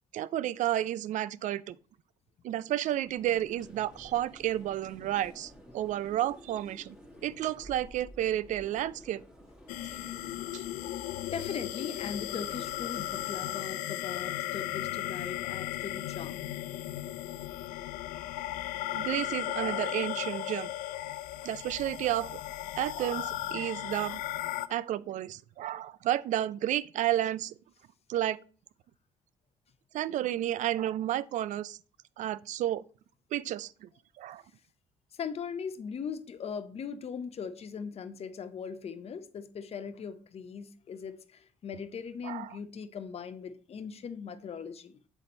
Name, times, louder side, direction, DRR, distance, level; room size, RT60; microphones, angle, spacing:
voice 1, 0.1-1.8 2.4-7.0 7.2-9.2 10.5-10.6 18.9-20.7 21.4-22.3 22.8-24.2 24.7-27.5 28.1-28.4 29.9-31.8 32.2-32.8 33.3-33.9 34.2-34.4 42.2-42.5, right 12 dB, 60° right, 0.4 m, -31 dB
sound 1, 2.8-13.8, equal, 5° right, 2.2 m, -52 dB
sound 2, 9.7-24.7, left 14 dB, 75° left, 0.4 m, -36 dB
voice 2, 10.9-16.5 18.9-19.0 20.3-20.4 23.8-24.2 24.7-24.8 35.1-45.0, left 6 dB, 45° left, 0.7 m, -40 dB
7.0 x 4.1 x 4.3 m
supercardioid pair, 60°, 14 cm